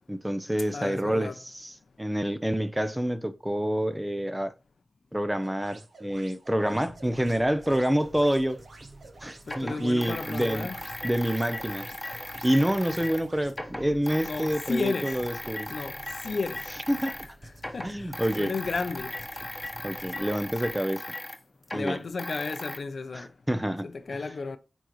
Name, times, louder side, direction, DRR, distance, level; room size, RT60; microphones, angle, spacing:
voice 1, 0.1-4.5 5.1-8.6 9.2-10.7 11.0-11.9 12.4-15.7 16.9-17.2 17.8-18.5 19.8-21.0 21.7-22.0 23.1-23.9, equal, 10° right, 0.6 m, -27 dB
voice 2, 0.7-1.4 9.5-10.8 14.3-15.2 15.7-16.0 16.2-16.6 17.7-19.4 21.7-23.3 23.8-24.6, left 4 dB, 70° left, 0.6 m, -33 dB
sound 1, 5.4-13.5, right 3 dB, 75° right, 1.5 m, -51 dB
sound 2, 6.6-20.7, right 1 dB, 35° right, 0.9 m, -49 dB
sound 3, 8.3-8.4 9.4-13.2 13.5-17.3 17.6-22.8, left 1 dB, 20° left, 1.1 m, -38 dB
8.9 x 4.0 x 3.1 m
cardioid pair, 60°, 0 cm